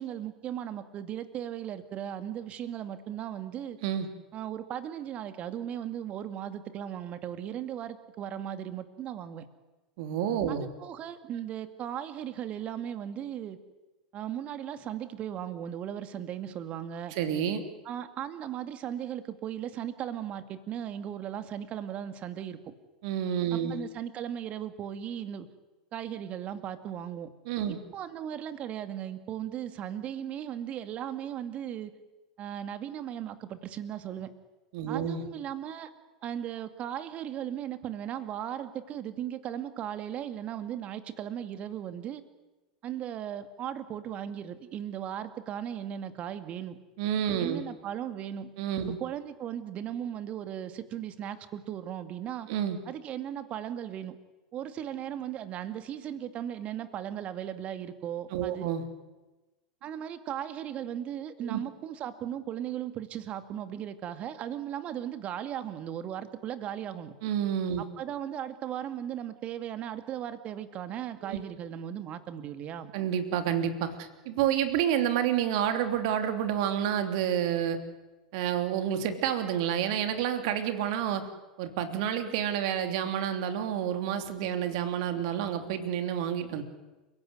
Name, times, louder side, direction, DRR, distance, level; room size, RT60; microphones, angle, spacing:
voice 1, 0.0-3.8 4.3-9.4 10.5-13.6 14.1-17.1 17.8-22.7 23.5-25.5 25.9-27.3 27.7-31.9 32.4-34.3 34.9-35.9 36.2-42.2 42.8-46.8 47.4-48.5 49.0-52.5 52.9-54.2 54.5-58.7 59.8-67.1 67.8-72.9, right 10 dB, 40° right, 10 dB, 2.3 m, -37 dB
voice 2, 10.0-10.7 17.1-17.6 23.0-23.8 27.4-27.8 34.7-35.2 47.0-47.6 48.6-49.0 52.5-52.8 58.3-58.8 61.4-61.6 67.2-67.8 71.2-71.4 72.9-77.8 78.3-81.2 81.6-86.6, right 9 dB, 55° right, 8 dB, 3.1 m, -29 dB
29.5 x 16.5 x 9.7 m, 1.1 s
figure-of-eight pair, 85°, 4 cm